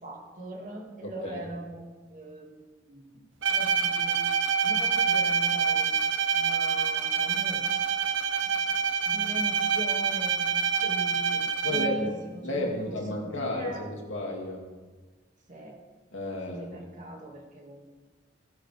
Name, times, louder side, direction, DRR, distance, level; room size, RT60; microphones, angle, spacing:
voice 1, 0.0-6.0 6.3-7.6 8.4-13.9 15.5-15.8 16.5-18.0, right 1 dB, 40° right, 0 dB, 2.3 m, -41 dB
voice 2, 1.0-1.4 11.6-12.1 12.4-14.6 16.1-16.7, left 1 dB, 85° left, -1 dB, 2.6 m, -32 dB
Bowed string instrument, 3.4-12.2, right 6 dB, 80° right, 0.7 m, -26 dB
17.0 x 10.5 x 3.5 m, 1.3 s
head